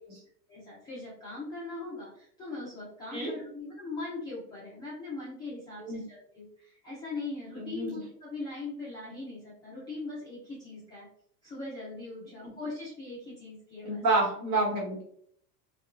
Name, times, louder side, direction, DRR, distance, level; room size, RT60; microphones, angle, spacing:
voice 1, 0.5-11.1 11.4-14.0, left 3 dB, 10° left, -9 dB, 0.4 m, -40 dB
voice 2, 7.5-7.9 13.8-15.0, right 2 dB, 40° right, -3 dB, 1.2 m, -29 dB
2.9 x 2.3 x 2.4 m, 0.65 s
supercardioid pair, 135°, 48 cm